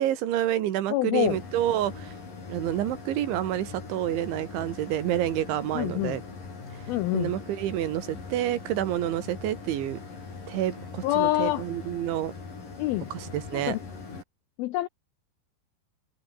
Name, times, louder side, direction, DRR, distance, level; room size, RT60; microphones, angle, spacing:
voice 1, 0.0-2.1 2.5-6.2 7.1-10.0 10.5-12.3 13.1-13.8, right 12 dB, 85° right, 4.3 m, -28 dB
voice 2, 0.9-1.4 5.7-6.2 6.9-7.3 11.0-11.6 12.8-13.1 13.5-13.8 14.6-14.9, left 16 dB, 80° left, 2.1 m, -26 dB
sound 1, 1.2-14.2, left 4 dB, 45° left, 8.0 m, -41 dB
omnidirectional pair, 5.2 m